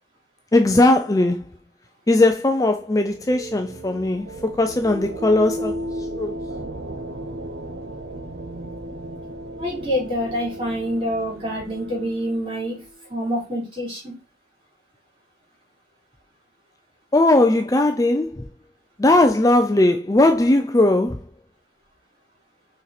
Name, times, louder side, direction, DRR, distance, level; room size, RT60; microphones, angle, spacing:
voice 1, 0.5-1.4 2.1-5.9 6.2-6.3 17.1-18.5 19.0-21.2, left 2 dB, 20° left, 0.4 m, -18 dB
sound 1, 2.5-13.0, right 1 dB, 70° right, 0.8 m, -35 dB
voice 2, 9.6-12.8 13.1-14.1, equal, 30° right, 3.7 m, -26 dB
5.9 x 4.3 x 4.1 m
head